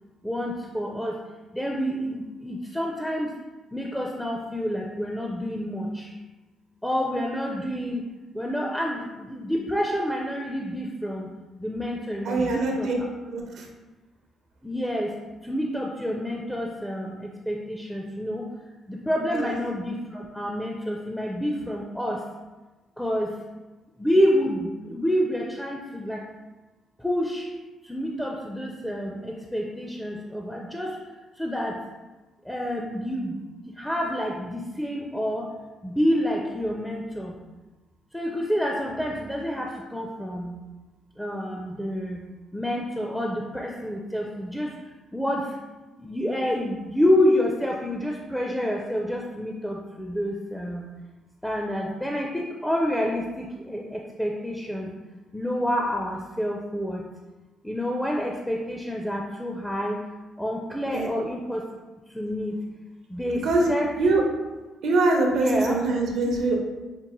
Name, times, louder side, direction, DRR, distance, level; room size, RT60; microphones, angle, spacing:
voice 1, 0.2-1.1 1.5-3.3 3.7-6.1 6.8-8.0 8.4-11.3 11.6-12.9 14.6-15.1 15.5-17.2 17.5-18.5 18.9-22.2 23.0-23.3 24.0-26.2 27.0-27.4 27.9-30.9 31.4-31.8 32.5-33.4 33.8-35.5 35.8-37.3 38.1-40.6 41.2-42.2 42.5-44.7 45.1-45.5 46.0-50.8 51.4-54.9 55.3-57.0 57.6-60.0 60.4-61.6 62.2-62.5 63.1-63.9 65.3-65.8, equal, 5° left, 0 dB, 0.4 m, -28 dB
voice 2, 12.2-13.0 13.3-13.7 19.3-19.5 60.9-61.1 63.4-63.7 64.0-64.2 64.8-66.6, right 2 dB, 75° right, 1 dB, 0.7 m, -23 dB
5.1 x 2.1 x 3.0 m, 1.2 s
cardioid pair, 90°, 0 cm